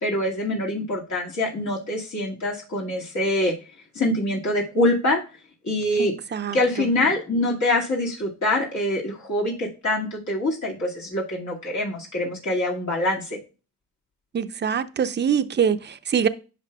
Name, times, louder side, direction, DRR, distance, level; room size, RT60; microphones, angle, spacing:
voice 1, 0.0-3.5 4.0-5.2 5.6-6.2 6.5-13.4, left 1 dB, 65° left, 2.0 m, -24 dB
voice 2, 6.0-6.6 14.3-16.3, right 7 dB, 35° right, 0.6 m, -24 dB
10.0 x 5.4 x 2.3 m
cardioid pair, 85°, 30 cm